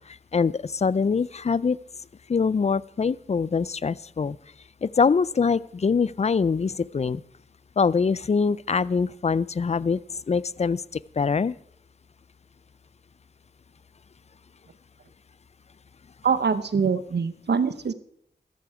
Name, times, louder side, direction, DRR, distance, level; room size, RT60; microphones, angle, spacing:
voice 1, 0.1-1.8 2.3-4.4 4.8-7.2 7.8-10.0 10.3-11.5, left 5 dB, 40° left, 21 dB, 0.4 m, -24 dB
voice 2, 16.2-17.9, right 6 dB, 80° right, 13 dB, 0.9 m, -24 dB
14.0 x 12.0 x 4.8 m, 0.72 s
wide cardioid pair, 70°, 17 cm